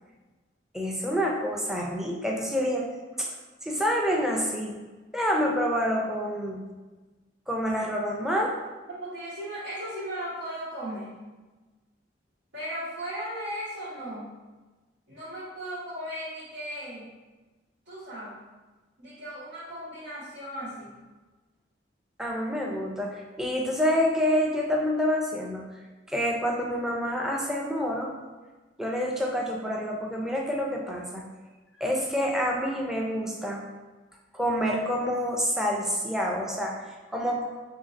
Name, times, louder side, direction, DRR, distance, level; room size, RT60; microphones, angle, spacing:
voice 1, 0.7-2.9 3.2-3.3 3.6-4.8 5.1-6.6 7.5-8.6 22.2-25.6 26.1-28.1 28.8-31.2 31.8-33.6 34.3-36.8 37.1-37.5, equal, 5° right, -1 dB, 0.5 m, -27 dB
voice 2, 8.9-11.2 12.5-14.3 15.1-17.1 17.9-18.5 19.0-21.0, equal, 90° right, -13 dB, 1.3 m, -37 dB
5.2 x 2.8 x 2.5 m, 1.2 s
head